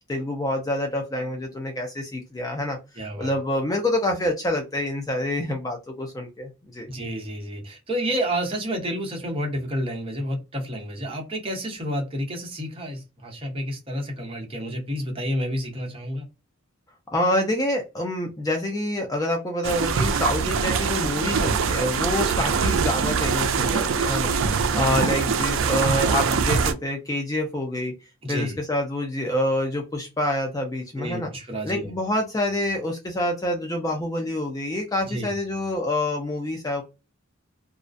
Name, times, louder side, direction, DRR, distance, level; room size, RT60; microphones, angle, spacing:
voice 1, 0.1-2.8 3.2-6.9 17.1-27.9 28.3-31.3 31.6-36.8, left 1 dB, 15° left, 2 dB, 0.3 m, -27 dB
voice 2, 3.0-3.3 6.9-16.3 22.2-22.5 24.4-25.1 28.2-28.6 30.9-31.9 35.0-35.3, equal, 25° right, 0 dB, 0.8 m, -30 dB
sound 1, 19.6-26.7, right 5 dB, 65° right, 0.4 m, -23 dB
2.4 x 2.1 x 2.5 m, 0.27 s
head